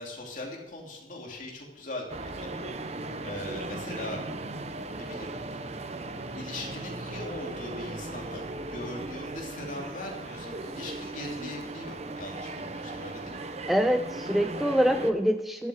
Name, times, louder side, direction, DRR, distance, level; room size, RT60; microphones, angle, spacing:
voice 1, 0.0-4.2 4.9-5.6 6.3-13.6, left 1 dB, 45° left, -1 dB, 2.8 m, -40 dB
sound 1, 2.1-15.1, right 2 dB, 35° right, 0.7 m, -37 dB
voice 2, 13.7-15.7, equal, ahead, 7 dB, 0.4 m, -25 dB
11.5 x 8.2 x 6.3 m, 0.97 s
head